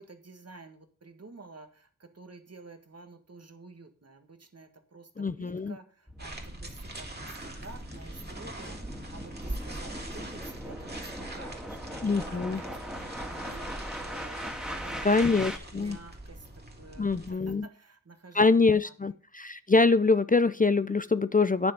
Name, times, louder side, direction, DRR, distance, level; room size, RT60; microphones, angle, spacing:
voice 1, 0.0-8.8 9.1-18.9, right 3 dB, 55° right, 7 dB, 1.7 m, -50 dB
voice 2, 5.2-5.8 12.0-12.6 14.4-14.5 15.0-16.0 17.0-17.7 18.3-21.7, left 3 dB, 30° left, 14 dB, 0.5 m, -24 dB
sound 1, 6.1-15.6, equal, 5° right, 2.1 m, -40 dB
sound 2, 6.2-17.3, right 1 dB, 30° right, 2.8 m, -42 dB
9.5 x 6.9 x 5.3 m, 0.42 s
wide cardioid pair, 45°, 31 cm